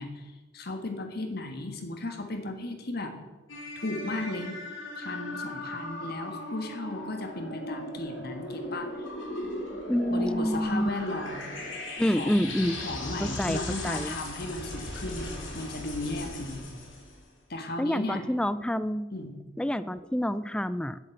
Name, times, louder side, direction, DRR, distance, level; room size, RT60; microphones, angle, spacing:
voice 1, 0.0-3.1 3.7-4.6 5.0-9.1 10.1-11.6 12.1-16.7 17.5-18.2 19.1-19.3, left 2 dB, 55° left, 5 dB, 1.6 m, -35 dB
sound 1, 3.5-17.2, left 1 dB, 85° left, 2.9 m, -38 dB
voice 2, 9.9-10.9 12.0-12.7 13.2-14.2 17.8-19.1 19.6-21.0, equal, 5° left, 14 dB, 0.3 m, -28 dB
7.8 x 7.5 x 8.0 m, 1.2 s
head